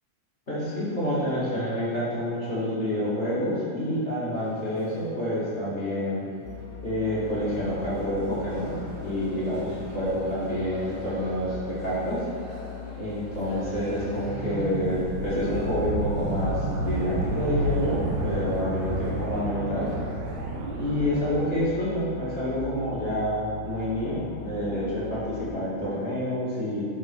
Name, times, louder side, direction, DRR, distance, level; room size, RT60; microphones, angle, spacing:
voice 1, 0.5-6.2 6.8-8.7 9.0-12.2 13.0-19.9 20.8-26.9, equal, 40° left, -11 dB, 0.9 m, -28 dB
sound 1, 4.3-21.1, equal, 45° right, 2.8 m, -44 dB
sound 2, 6.4-25.5, left 8 dB, 80° left, 2.4 m, -40 dB
sound 3, 13.3-21.6, right 2 dB, 80° right, 2.4 m, -31 dB
11.0 x 6.3 x 4.8 m, 2.2 s
omnidirectional pair, 5.8 m